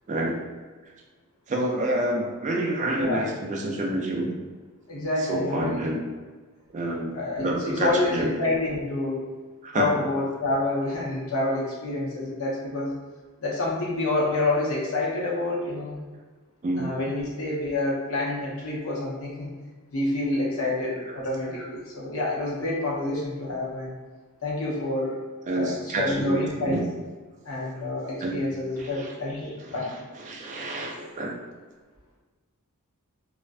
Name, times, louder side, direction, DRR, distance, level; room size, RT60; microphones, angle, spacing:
voice 1, 0.1-0.4 1.5-4.3 5.2-6.0 6.7-8.3 9.6-10.0 16.6-16.9 20.8-21.1 25.5-26.8 28.2-28.3 28.8-29.1 29.7-31.3, right 1 dB, 35° right, 0 dB, 0.3 m, -28 dB
voice 2, 2.9-3.3 4.9-5.8 7.1-9.3 9.7-12.9 13.4-16.0 16.8-19.5 19.9-23.9 24.4-25.2 25.5-26.8 27.4-29.9, left 2 dB, 65° left, -5 dB, 0.7 m, -28 dB
2.4 x 2.1 x 2.4 m, 1.4 s
head